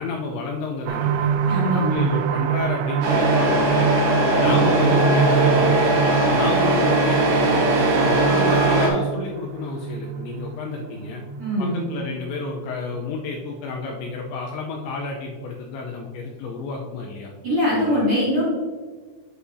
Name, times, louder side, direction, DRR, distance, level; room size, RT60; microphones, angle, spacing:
voice 1, 0.0-3.9 4.3-6.0 6.3-11.2 11.6-17.3 17.7-18.0, left 3 dB, 85° left, 0 dB, 2.7 m, -31 dB
sound 1, 0.9-14.3 14.8-14.9 15.3-15.4, right 7 dB, 90° right, 3.3 m, -26 dB
voice 2, 1.5-2.0 11.4-11.9 17.4-18.4, equal, 35° right, -9 dB, 2.4 m, -22 dB
Truck, 3.0-8.9, right 1 dB, 70° right, 1.8 m, -19 dB
8.4 x 8.0 x 2.7 m, 1.5 s
omnidirectional pair, 5.8 m